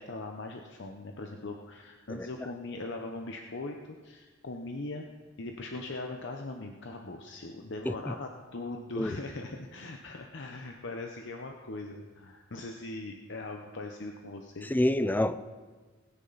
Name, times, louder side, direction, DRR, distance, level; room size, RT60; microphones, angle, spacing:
voice 1, 0.0-3.8 4.0-5.0 5.4-14.7, left 2 dB, 65° left, 3 dB, 0.9 m, -40 dB
voice 2, 14.7-15.4, left 1 dB, 10° left, 12 dB, 0.4 m, -27 dB
21.0 x 9.9 x 4.1 m, 1.4 s
head